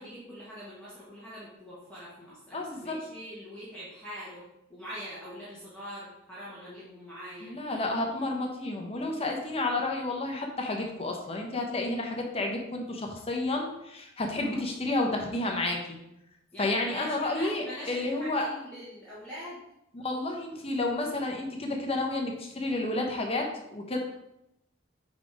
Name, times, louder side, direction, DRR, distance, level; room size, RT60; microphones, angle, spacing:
voice 1, 0.0-4.4 4.7-7.5 14.4-14.6 16.5-19.6, equal, 5° left, -10 dB, 1.5 m, -43 dB
voice 2, 2.5-3.0 7.4-16.0 16.6-18.5 19.9-24.0, left 2 dB, 30° left, 1 dB, 0.8 m, -31 dB
4.8 x 4.1 x 5.1 m, 0.84 s
head